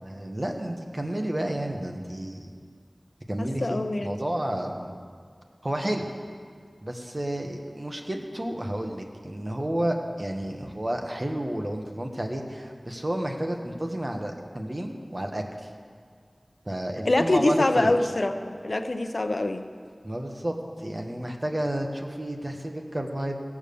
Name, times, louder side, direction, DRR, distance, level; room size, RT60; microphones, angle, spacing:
voice 1, 0.0-2.5 3.3-4.9 5.6-6.1 6.8-15.7 16.6-18.0 20.0-23.4, right 1 dB, 40° right, 3 dB, 1.4 m, -31 dB
voice 2, 3.6-4.2 17.0-19.6, left 2 dB, 70° left, 8 dB, 0.7 m, -24 dB
16.5 x 7.4 x 6.9 m, 2.1 s
wide cardioid pair, 50°, 0 cm